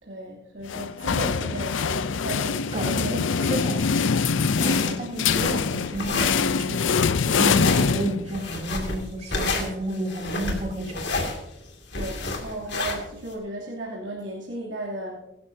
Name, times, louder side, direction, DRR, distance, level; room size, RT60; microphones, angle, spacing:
voice 1, 0.0-3.6 4.2-4.3 11.9-15.2, right 1 dB, 75° right, -5 dB, 2.9 m, -35 dB
sound 1, 0.7-8.6, left 5 dB, 80° left, 0.5 m, -24 dB
voice 2, 2.7-6.9 7.3-11.0, right 1 dB, 35° right, 0 dB, 3.1 m, -31 dB
sound 2, 3.8-13.3, left 3 dB, 65° left, 2.5 m, -31 dB
22.5 x 12.5 x 2.8 m, 0.88 s
head